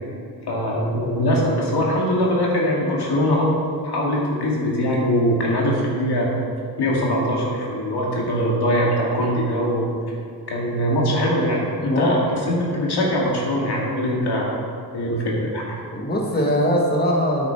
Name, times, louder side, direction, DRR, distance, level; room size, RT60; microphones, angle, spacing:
voice 1, 0.5-3.5 3.8-6.3 6.8-9.8 10.5-14.5 14.9-15.8, equal, 90° left, -3 dB, 2.1 m, -22 dB
voice 2, 11.8-12.2 15.9-17.5, equal, 25° left, -1 dB, 1.3 m, -21 dB
9.1 x 8.6 x 4.6 m, 2.3 s
wide cardioid pair, 115°, 38 cm